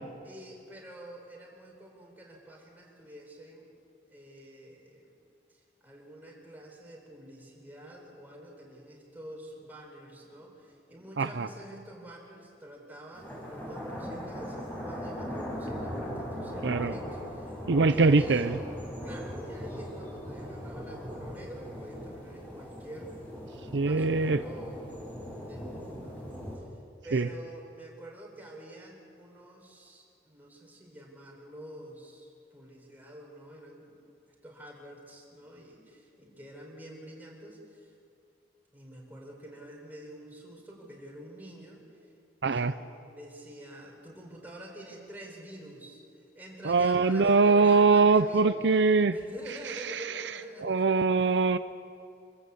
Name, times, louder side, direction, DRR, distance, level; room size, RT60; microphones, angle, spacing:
voice 1, 0.2-3.7 4.1-5.2 5.5-17.6 17.9-18.5 19.0-23.2 23.6-24.8 25.2-26.6 27.0-34.0 34.4-37.9 38.7-41.8 42.5-48.8 49.1-51.6, right 1 dB, 10° right, -1 dB, 4.5 m, -47 dB
voice 2, 11.2-11.5 16.6-16.9 17.7-18.6 23.7-24.4 27.1-27.3 42.4-42.7 46.6-49.1 50.6-51.6, right 4 dB, 80° right, 12 dB, 0.6 m, -22 dB
sound 1, 13.1-26.6, equal, 10° left, 5.6 m, -39 dB
26.0 x 15.0 x 8.4 m, 2.5 s
head